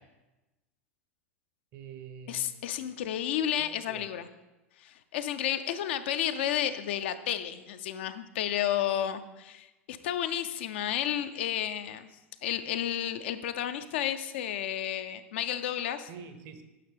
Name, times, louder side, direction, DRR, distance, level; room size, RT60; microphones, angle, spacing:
voice 1, 1.7-2.6 3.6-4.1 16.1-16.6, right 7 dB, 45° right, 8 dB, 0.8 m, -46 dB
voice 2, 2.3-4.3 4.8-12.1 12.4-16.1, left 11 dB, 55° left, 10 dB, 0.4 m, -32 dB
9.4 x 5.7 x 3.4 m, 1.0 s
figure-of-eight pair, 85°, 7 cm